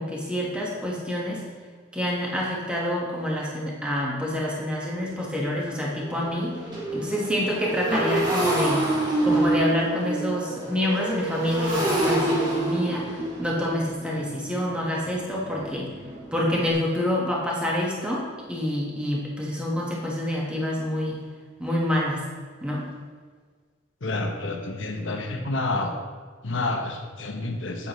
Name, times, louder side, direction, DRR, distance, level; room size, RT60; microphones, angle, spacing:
voice 1, 0.0-1.4 1.9-6.5 6.9-8.9 9.2-15.9 16.3-21.2 21.6-22.2 22.6-22.9, left 1 dB, 5° right, -4 dB, 1.5 m, -27 dB
Motorcycle, 4.1-4.2 4.7-4.8 5.1-16.7, right 1 dB, 25° right, 1.7 m, -28 dB
voice 2, 24.0-26.0 26.4-27.9, left 2 dB, 85° left, 4 dB, 1.0 m, -29 dB
8.5 x 8.2 x 3.2 m, 1.5 s
head